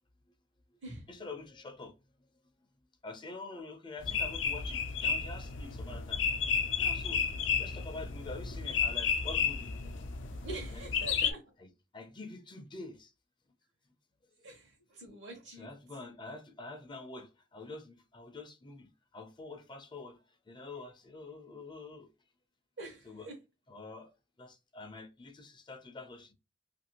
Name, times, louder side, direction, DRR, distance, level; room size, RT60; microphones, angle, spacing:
voice 1, 1.1-2.0 3.0-6.2 6.8-7.2 7.6-9.7 10.7-11.1 11.6-13.1 15.6-22.1 23.1-23.3 23.7-24.1 24.4-26.3, left 3 dB, 25° left, 0.5 m, -46 dB
sound 1, 4.0-11.3, left 6 dB, 75° left, 0.6 m, -32 dB
voice 2, 10.4-11.4 14.4-15.7 22.8-23.3, right 2 dB, 70° right, 1.0 m, -45 dB
2.9 x 2.6 x 2.8 m
head